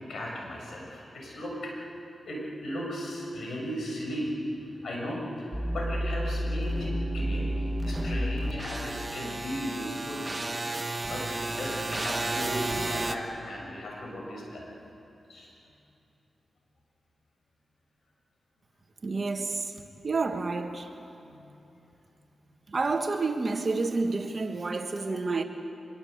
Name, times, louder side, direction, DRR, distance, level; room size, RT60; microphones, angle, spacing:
voice 1, 0.1-1.8 2.2-10.4 11.1-11.3 11.6-14.6 15.3-15.5 21.1-21.6, equal, 75° left, 6.9 m, -36 dB
sound 1, 5.5-13.2, right 1 dB, 20° right, 1.5 m, -31 dB
voice 2, 19.0-19.7 20.0-20.9 22.7-25.4, right 3 dB, 45° right, 1.8 m, -29 dB
24.5 x 22.5 x 8.2 m
cardioid pair, 80°, 0 cm